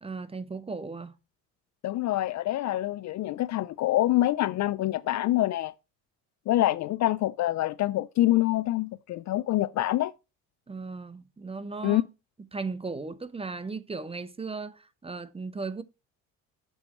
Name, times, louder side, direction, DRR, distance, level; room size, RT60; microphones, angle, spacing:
voice 1, 0.0-1.2 10.7-12.0 12.5-15.8, right 4 dB, 15° right, 0.7 m, -36 dB
voice 2, 1.8-5.7 6.5-10.1 11.8-12.0, left 15 dB, 45° left, 0.4 m, -26 dB
7.2 x 4.1 x 5.4 m
supercardioid pair, 70°, 39 cm